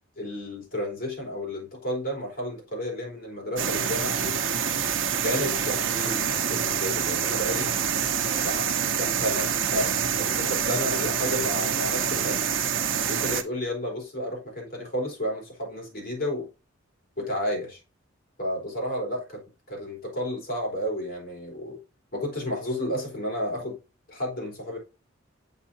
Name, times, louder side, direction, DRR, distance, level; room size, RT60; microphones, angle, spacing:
voice 1, 0.2-4.4 5.2-7.7 8.4-9.9 10.2-12.5 13.1-16.5 17.2-17.8 18.4-19.4 19.7-21.8 22.1-23.8 24.1-24.8, equal, 50° left, 3.9 m, -31 dB
sound 1, 3.6-13.4, right 7 dB, 70° right, 0.8 m, -26 dB
7.4 x 5.6 x 2.9 m
head